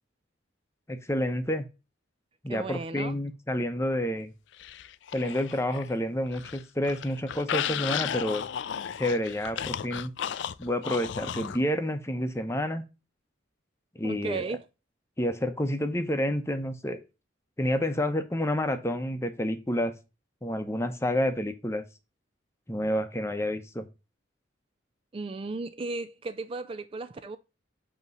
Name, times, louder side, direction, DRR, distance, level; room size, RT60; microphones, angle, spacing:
voice 1, 0.9-1.6 2.4-4.3 5.1-8.4 9.0-10.1 10.6-12.8 14.0-14.5 15.2-17.0 17.6-19.9 20.4-21.8 22.7-23.9, left 1 dB, 15° left, 0.7 m, -29 dB
voice 2, 2.5-3.2 14.0-14.6 25.1-27.4, right 3 dB, 30° right, 0.3 m, -35 dB
sound 1, 4.6-5.9 6.3-11.6, left 9 dB, 65° left, 0.4 m, -34 dB
8.1 x 3.0 x 5.3 m
head